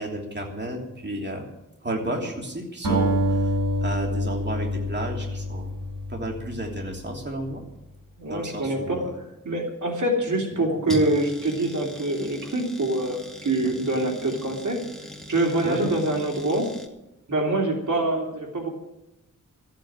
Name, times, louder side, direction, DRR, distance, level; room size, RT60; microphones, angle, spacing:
voice 1, 0.0-1.4 1.8-3.5 3.8-5.7 6.1-7.6 8.3-9.1 10.5-10.7 13.6-13.7 15.6-15.9, right 1 dB, 35° right, 0 dB, 3.1 m, -32 dB
Acoustic guitar, 2.8-7.3, equal, 85° right, 5.9 m, -27 dB
voice 2, 8.2-13.2 13.4-14.8 15.3-16.7 17.3-18.7, right 2 dB, 65° right, 0 dB, 3.2 m, -25 dB
sound 1, 10.9-16.9, equal, ahead, 2.3 m, -40 dB
14.5 x 9.0 x 8.7 m, 0.89 s
wide cardioid pair, 70°, 32 cm